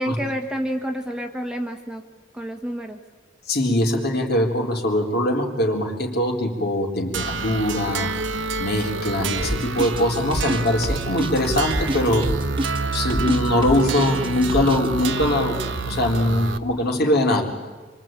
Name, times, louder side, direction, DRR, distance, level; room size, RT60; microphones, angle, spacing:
voice 1, 0.0-2.0 2.3-3.0, equal, 5° right, 3 dB, 1.6 m, -28 dB
voice 2, 3.5-8.2 8.6-12.3 12.9-17.4, left 1 dB, 55° left, 1 dB, 3.9 m, -22 dB
sound 1, 7.1-16.6, right 4 dB, 80° right, 1.2 m, -28 dB
sound 2, 9.4-14.9, equal, 30° right, 1.5 m, -27 dB
27.0 x 24.0 x 9.0 m, 1.4 s
head